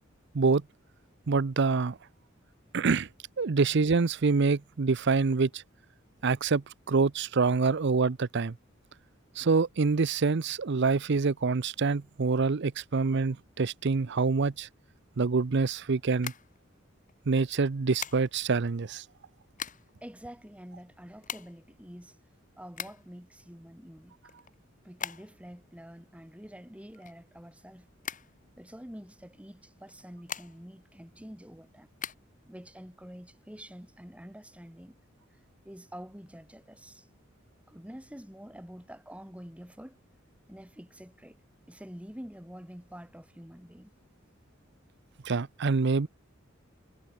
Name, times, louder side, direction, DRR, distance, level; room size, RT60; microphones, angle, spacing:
voice 1, 1.3-2.0 2.7-3.1 3.4-5.6 6.2-8.5 9.4-14.7 15.2-16.3 17.3-19.0 45.2-46.1, right 4 dB, 60° right, 0.6 m, -26 dB
sound 1, 16.1-17.1 18.0-18.6 19.2-20.0 20.3-20.4 20.6-23.2 23.7-25.6 25.8-27.6 28.0-29.0 29.8-30.8 31.2-32.2, left 8 dB, 40° left, 4.1 m, -41 dB
voice 2, 20.0-22.2 22.6-24.3 24.8-27.9 28.6-31.9 32.5-35.0 35.6-37.1 37.7-40.0 40.5-41.4 41.7-43.9, equal, 5° right, 2.4 m, -47 dB
head